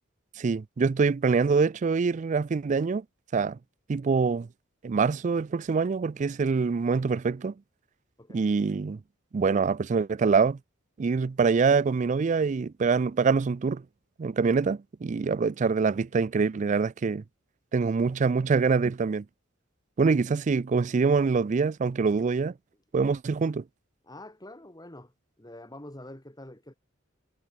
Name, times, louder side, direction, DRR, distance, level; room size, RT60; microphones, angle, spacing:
voice 1, 0.4-3.0 3.3-3.6 3.9-4.5 4.8-7.5 8.3-9.0 9.3-10.6 11.0-13.8 14.2-17.2 17.7-19.2 20.0-22.5 22.9-23.6, right 5 dB, 40° right, 0.4 m, -25 dB
voice 2, 24.0-26.7, left 1 dB, 20° left, 3.9 m, -46 dB
head